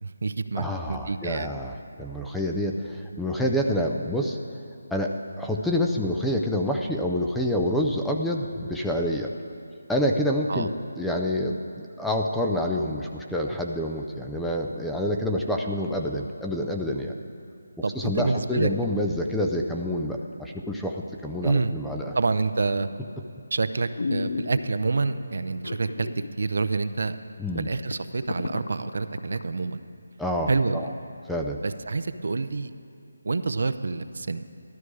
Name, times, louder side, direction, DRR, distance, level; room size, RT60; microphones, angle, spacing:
voice 1, 0.0-1.5 10.5-10.7 17.8-18.7 21.4-21.7 22.1-22.9 23.5-26.1 26.4-27.2 27.6-29.8 30.5-30.9 31.6-32.7 33.2-34.4, right 4 dB, 60° right, 11 dB, 0.6 m, -27 dB
voice 2, 0.6-4.4 4.9-9.3 9.9-10.7 11.0-11.6 12.0-17.2 17.9-22.1 27.4-27.7 30.2-30.9 31.3-31.6, left 1 dB, ahead, 0 dB, 0.4 m, -27 dB
sound 1, 22.8-23.1 23.6-23.7 24.0-25.0 25.6-26.3 26.6-26.7 27.2-27.3 27.5-29.4 29.9-30.0, left 3 dB, 65° left, 0.4 m, -33 dB
14.0 x 12.5 x 4.8 m, 2.4 s
figure-of-eight pair, 170°, 0 cm